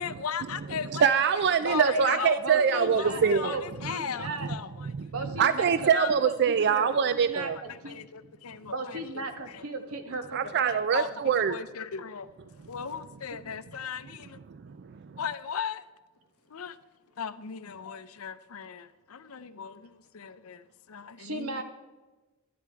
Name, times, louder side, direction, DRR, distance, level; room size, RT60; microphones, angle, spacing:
voice 1, 0.0-1.1 1.6-4.9 5.4-5.5 5.9-6.1 7.7-9.6 10.7-12.3 12.7-14.4 15.2-15.8 16.5-16.8 17.2-21.6, left 7 dB, 75° left, 0.6 m, -37 dB
voice 2, 0.7-3.6 3.8-3.9 4.4-4.5 4.8-7.6 10.3-11.6 14.5-15.2, right 7 dB, 50° right, 0.4 m, -25 dB
voice 3, 1.6-4.5 5.1-5.9 6.2-6.9 7.3-7.5 7.8-8.0 8.7-10.7 21.2-21.6, right 2 dB, 80° right, 1.5 m, -35 dB
12.0 x 10.5 x 4.6 m
head